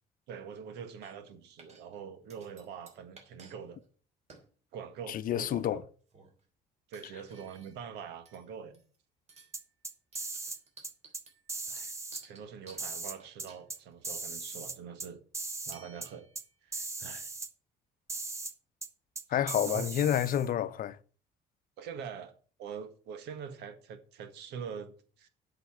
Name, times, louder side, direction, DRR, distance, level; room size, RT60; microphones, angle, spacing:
voice 1, 0.3-3.8 4.7-5.6 6.9-8.8 11.7-11.9 12.2-15.2 15.7-16.3 16.6-17.3 19.3-19.4 19.6-19.8 21.8-22.3 22.6-25.3, right 7 dB, 85° right, 1.8 m, -44 dB
sound 1, 1.0-1.3 1.6-2.0 2.3-3.6 3.8-3.9 4.3-4.5 5.2-5.8 6.1-6.4 6.9-7.9 8.3-9.0 9.3-9.6 10.1-14.2 15.7-16.6, right 4 dB, 40° right, 3.3 m, -56 dB
voice 2, 5.1-5.8 19.3-21.0, left 10 dB, 55° left, 0.8 m, -29 dB
sound 2, 9.5-10.6 10.8-11.2 11.5-12.2 12.8-13.8 14.0-15.1 15.3-15.8 16.0-16.1 16.4-16.5 16.7-17.5 18.1-18.5 18.8-18.9 19.2-20.5, right 3 dB, 15° right, 1.1 m, -38 dB
8.3 x 6.9 x 7.6 m
cardioid pair, 110°, 17 cm